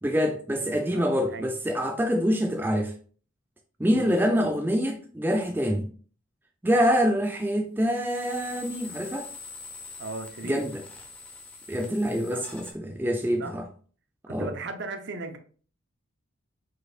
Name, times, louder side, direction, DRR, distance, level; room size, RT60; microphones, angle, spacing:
voice 1, 0.0-2.9 3.8-5.9 6.6-9.3 10.4-10.8 11.7-13.6 14.3-14.5, equal, 10° right, 0.4 m, -25 dB
voice 2, 0.5-1.0 1.3-1.5 3.9-4.4 10.0-10.6 12.3-12.5 13.4-13.6 14.3-15.4, right 3 dB, 50° right, 0.6 m, -37 dB
sound 1, 7.9-12.7, left 4 dB, 5° left, 0.8 m, -44 dB
5.3 x 4.0 x 2.4 m
head